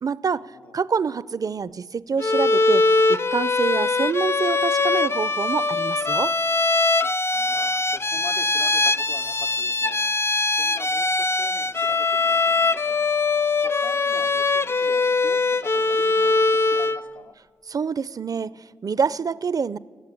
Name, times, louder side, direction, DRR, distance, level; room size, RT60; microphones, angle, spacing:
voice 1, 0.0-0.4 0.7-2.8 3.1-6.3 17.7-19.8, right 5 dB, 50° right, 19 dB, 0.5 m, -26 dB
Bowed string instrument, 2.2-17.1, left 3 dB, 30° left, 0.4 m, -22 dB
voice 2, 7.3-10.1 10.5-13.0 13.6-17.4, left 4 dB, 80° left, 3 dB, 1.1 m, -43 dB
18.5 x 8.2 x 8.4 m, 1.5 s
cardioid pair, 50°, 8 cm